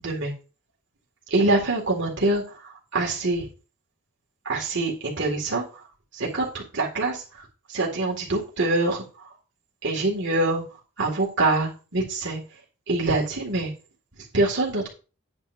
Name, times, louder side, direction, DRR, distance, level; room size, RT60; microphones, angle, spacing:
voice 1, 1.3-3.5 4.5-5.6 6.1-9.3 9.8-10.6 11.0-12.4 12.9-13.7 14.3-14.9, right 2 dB, 55° right, -2 dB, 2.1 m, -25 dB
11.0 x 8.9 x 2.6 m, 0.35 s
head